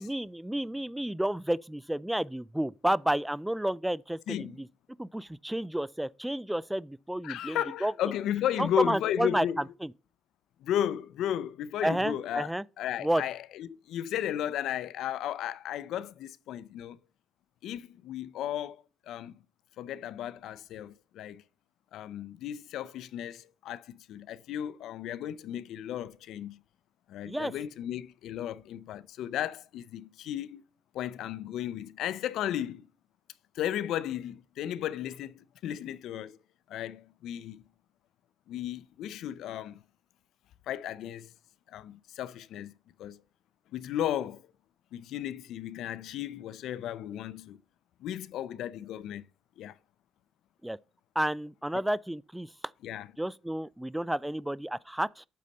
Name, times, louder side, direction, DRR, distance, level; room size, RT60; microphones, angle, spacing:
voice 1, 0.0-4.7 5.0-7.9 8.6-9.5 9.8-9.9 11.8-12.6 13.0-13.2 27.2-27.5 50.6-50.8 51.2-52.5 53.2-55.3, right 1 dB, 5° right, 0.3 m, -31 dB
voice 2, 4.3-4.6 7.2-9.7 10.6-12.5 12.8-17.0 17.6-19.3 19.8-21.4 21.9-26.6 27.1-30.6 30.9-32.9 33.5-36.4 36.7-37.6 38.5-39.8 40.7-41.3 41.7-42.7 43.0-43.2 43.7-44.4 44.9-47.6 48.0-49.3 49.6-49.8 52.8-53.1, left 11 dB, 85° left, 0.5 m, -34 dB
8.4 x 4.1 x 6.4 m
cardioid pair, 90°, 0 cm